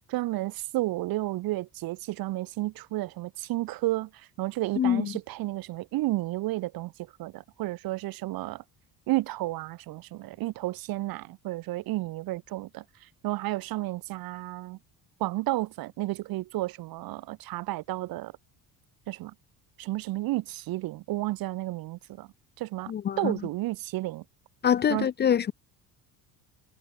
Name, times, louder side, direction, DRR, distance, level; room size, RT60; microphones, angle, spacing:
voice 1, 0.1-6.9 7.2-8.6 9.1-12.8 13.2-14.8 15.2-18.3 19.1-19.3 19.8-22.3 22.6-24.2 24.9-25.1, right 18 dB, 65° right, 1.4 m, -32 dB
voice 2, 4.8-5.1 22.9-23.3 24.6-25.5, left 9 dB, 25° left, 0.6 m, -25 dB
cardioid pair, 170°, 38 cm